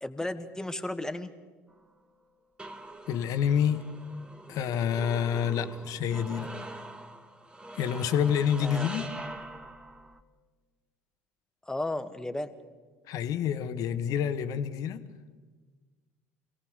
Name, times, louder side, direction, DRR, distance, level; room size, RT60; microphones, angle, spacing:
voice 1, 0.0-1.3 8.6-8.9 11.7-12.5, left 1 dB, 10° left, 8 dB, 1.8 m, -34 dB
sound 1, 1.7-10.2, right 2 dB, 15° right, 1.8 m, -44 dB
voice 2, 3.1-3.8 4.5-6.5 7.7-9.0 13.1-15.0, left 8 dB, 60° left, 10 dB, 1.5 m, -28 dB
26.5 x 17.5 x 6.7 m, 1.4 s
hypercardioid pair, 65°, 7 cm